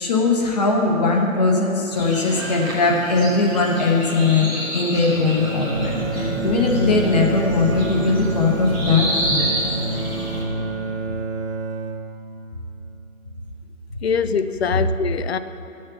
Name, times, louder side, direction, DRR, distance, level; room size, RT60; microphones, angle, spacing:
voice 1, 0.0-9.5, left 3 dB, 30° left, 0 dB, 1.0 m, -20 dB
sound 1, 1.9-10.4, right 1 dB, 5° left, 0.6 m, -29 dB
Bowed string instrument, 5.2-13.5, right 4 dB, 55° right, 0.9 m, -30 dB
sound 2, 5.7-10.9, left 1 dB, 80° left, 2.8 m, -29 dB
voice 2, 14.0-15.4, left 6 dB, 50° left, 12 dB, 0.5 m, -23 dB
10.5 x 6.5 x 6.9 m, 2.9 s
hypercardioid pair, 155°, 41 cm